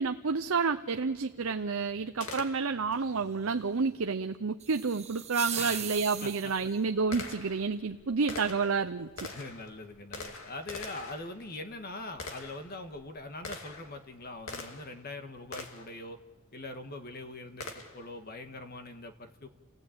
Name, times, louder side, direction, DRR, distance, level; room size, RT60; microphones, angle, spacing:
voice 1, 0.0-9.3, right 4 dB, 70° right, 7 dB, 0.7 m, -30 dB
Gunshot gunfire, 2.2-3.0 5.3-5.4 6.2-15.0 15.5-16.0 17.6-18.1, left 3 dB, 70° left, 2.4 m, -44 dB
sound 1, 4.6-6.8, right 10 dB, 30° right, 1.0 m, -38 dB
voice 2, 5.5-5.9 6.2-6.7 9.3-16.2 16.5-19.5, left 2 dB, 45° left, 7 dB, 1.5 m, -42 dB
29.5 x 16.5 x 8.7 m, 1.4 s
head